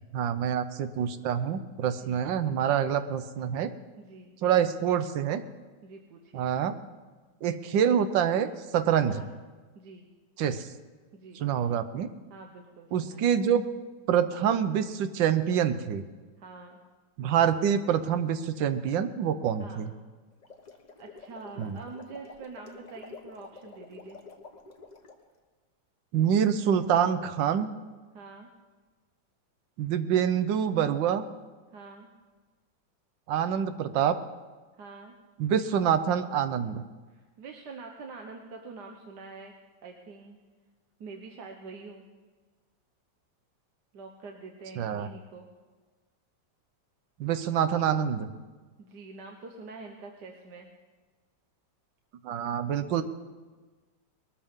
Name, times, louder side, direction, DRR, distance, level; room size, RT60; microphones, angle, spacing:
voice 1, 0.1-3.7 4.4-5.4 6.3-6.8 7.4-9.2 10.4-10.7 11.3-12.1 12.9-13.6 14.1-16.0 17.2-19.9 21.6-21.8 26.1-27.7 29.8-31.2 33.3-34.2 35.4-36.8 44.8-45.1 47.2-48.3 52.2-53.0, right 8 dB, 85° right, 11 dB, 1.5 m, -26 dB
voice 2, 1.9-2.2 3.9-4.3 5.8-6.5 9.1-9.3 9.7-10.1 11.1-11.4 12.3-13.3 16.4-16.8 19.6-19.9 21.0-24.2 28.1-28.5 31.7-32.1 34.7-35.1 37.1-39.5 39.8-40.4 41.0-42.0 43.9-45.5 48.8-50.7, right 4 dB, 70° right, 3 dB, 1.6 m, -45 dB
sound 1, 20.3-25.2, left 4 dB, 30° left, 0.9 m, -49 dB
21.0 x 13.5 x 3.7 m, 1.3 s
omnidirectional pair, 2.0 m